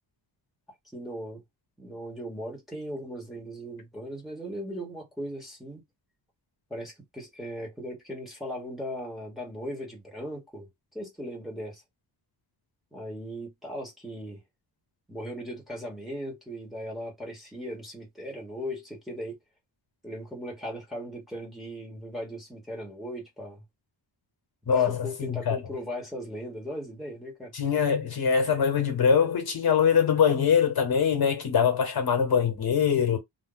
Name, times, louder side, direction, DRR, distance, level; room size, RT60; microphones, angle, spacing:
voice 1, 0.9-1.4 1.8-5.8 6.7-10.7 10.9-11.8 12.9-14.4 15.1-19.4 20.0-23.6 24.8-27.5, equal, ahead, 1.1 m, -38 dB
voice 2, 24.7-25.6 27.5-33.2, left 7 dB, 55° left, 1.0 m, -23 dB
2.6 x 2.1 x 3.7 m
wide cardioid pair, 170°, 45 cm